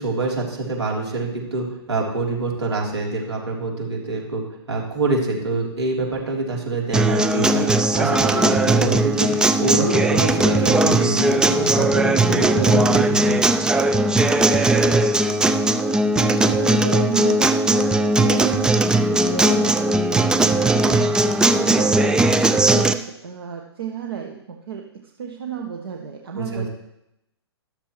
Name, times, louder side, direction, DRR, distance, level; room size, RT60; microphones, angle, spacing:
voice 1, 0.0-13.4 26.3-26.7, right 3 dB, 75° right, -2 dB, 3.6 m, -25 dB
Acoustic guitar, 6.9-22.9, right 2 dB, 5° right, 0.4 m, -18 dB
voice 2, 16.1-26.7, right 7 dB, 60° right, 2 dB, 1.2 m, -32 dB
13.5 x 12.0 x 3.2 m, 0.83 s
figure-of-eight pair, 115°, 14 cm